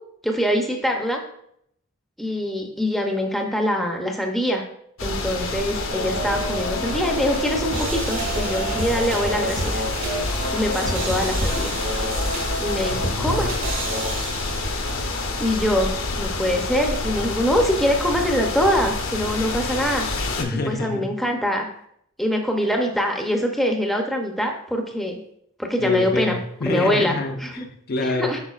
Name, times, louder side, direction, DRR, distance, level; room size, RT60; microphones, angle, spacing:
voice 1, 0.2-1.2 2.2-4.6 5.0-9.8 10.5-11.8 12.6-13.5 15.4-20.2 20.7-21.7 22.2-25.2 25.6-26.4 26.7-27.2 27.6-27.7 28.2-28.4, equal, ahead, 2 dB, 0.6 m, -24 dB
sound 1, 5.0-20.4, left 2 dB, 70° left, 0.8 m, -28 dB
champion fun, 5.9-15.1, right 1 dB, 65° right, 2.1 m, -29 dB
voice 2, 12.9-13.5 20.4-21.1 25.8-28.4, left 3 dB, 45° left, 5 dB, 0.5 m, -27 dB
8.2 x 5.5 x 2.4 m, 0.72 s
head